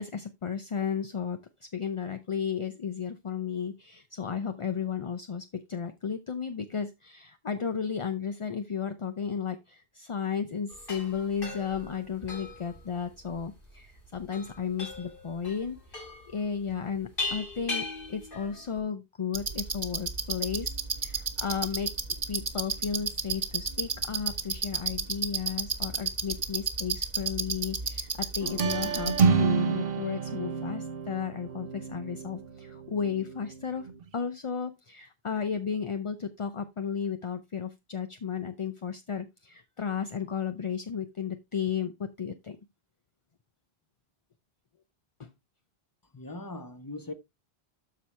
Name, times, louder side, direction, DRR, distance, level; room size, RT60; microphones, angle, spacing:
voice 1, 0.0-16.0 16.3-20.7 21.0-21.9 22.3-42.6 45.2-45.3, left 6 dB, 40° left, 0.5 m, -34 dB
sound 1, 10.7-18.8, left 3 dB, 55° left, 2.7 m, -39 dB
sound 2, 19.3-29.2, right 5 dB, 40° right, 1.2 m, -32 dB
sound 3, 28.4-34.1, right 5 dB, 60° right, 1.1 m, -29 dB
voice 2, 46.1-47.1, left 2 dB, 20° left, 1.0 m, -40 dB
13.0 x 4.7 x 3.3 m
omnidirectional pair, 1.1 m